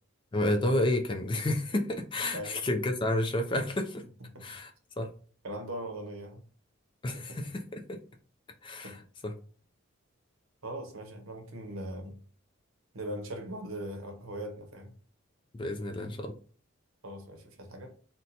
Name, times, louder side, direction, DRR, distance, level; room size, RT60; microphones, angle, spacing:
voice 1, 0.3-4.0 4.4-4.7 5.0-5.1 7.0-8.0 8.6-9.3 15.5-16.3, left 1 dB, 25° left, 0.3 m, -30 dB
voice 2, 5.4-6.4 7.1-7.4 8.8-9.0 10.6-12.2 12.9-14.9 17.0-17.9, right 1 dB, 75° right, 0.8 m, -40 dB
2.7 x 2.1 x 3.9 m
head